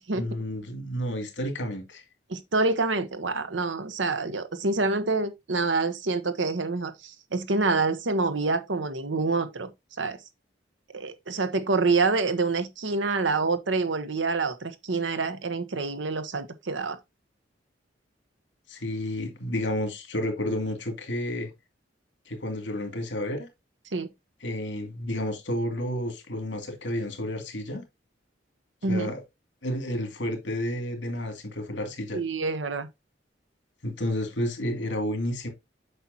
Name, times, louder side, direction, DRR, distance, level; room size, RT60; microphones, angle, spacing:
voice 1, 0.1-2.0 18.7-21.5 22.3-23.5 24.4-27.8 28.9-29.2 29.6-32.2 33.8-35.5, left 1 dB, 80° left, 2.5 m, -31 dB
voice 2, 2.3-9.7 10.0-10.2 10.9-17.0 23.9-24.1 28.8-29.1 32.1-32.9, right 3 dB, 85° right, 1.0 m, -27 dB
8.0 x 5.9 x 2.8 m
head